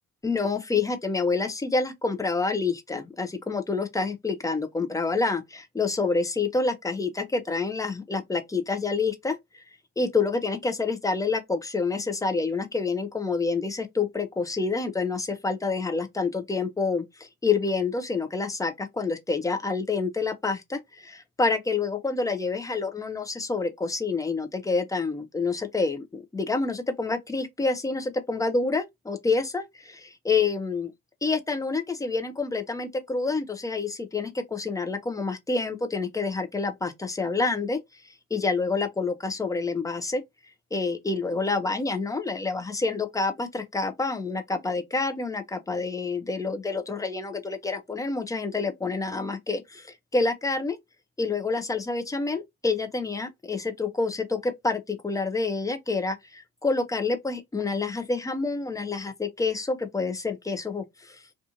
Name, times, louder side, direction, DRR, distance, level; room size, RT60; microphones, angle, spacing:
voice 1, 0.2-9.4 10.0-30.9 31.2-37.8 38.3-40.2 40.7-50.8 51.2-61.2, left 4 dB, 10° left, 0.4 m, -28 dB
2.4 x 2.4 x 2.6 m
figure-of-eight pair, 45°, 41 cm